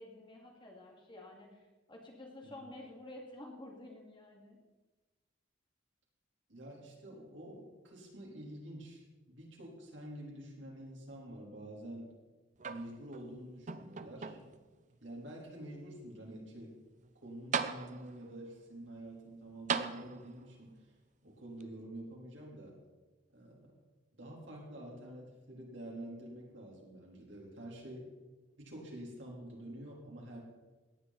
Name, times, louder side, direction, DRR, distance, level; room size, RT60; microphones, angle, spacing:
voice 1, 0.0-4.6, left 1 dB, 25° left, -1 dB, 2.5 m, -51 dB
voice 2, 6.5-12.1 12.7-14.4 15.0-16.7 17.2-20.7 21.2-22.7 23.3-23.7 24.2-28.1 28.6-30.4, right 1 dB, 70° right, -2 dB, 3.9 m, -48 dB
sound 1, 12.6-13.3 13.7-14.7 15.4-15.5 17.1-17.2 17.5-18.3 19.7-20.5 21.6-21.7, right 6 dB, 40° right, 0.6 m, -38 dB
17.5 x 10.0 x 4.3 m, 1.2 s
head